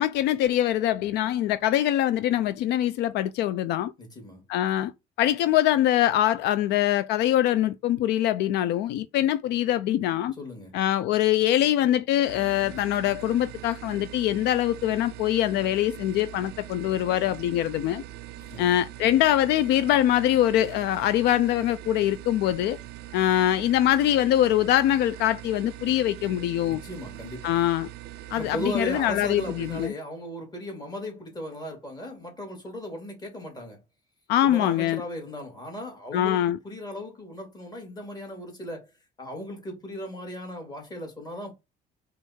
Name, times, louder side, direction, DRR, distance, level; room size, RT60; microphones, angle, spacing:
voice 1, 0.0-3.9 4.5-4.9 5.2-10.3 10.7-18.0 18.6-22.8 23.1-26.8 27.4-27.9 28.3-29.9 34.3-35.0 36.1-36.6, left 12 dB, 80° left, 0.4 m, -23 dB
voice 2, 4.0-4.4 10.4-10.8 18.4-18.8 26.7-27.5 28.3-33.8 34.4-38.9 39.2-41.5, left 1 dB, 25° left, 2.3 m, -37 dB
sound 1, 12.3-29.9, right 13 dB, 75° right, 0.4 m, -42 dB
4.5 x 2.5 x 4.2 m
cardioid pair, 110°, 17 cm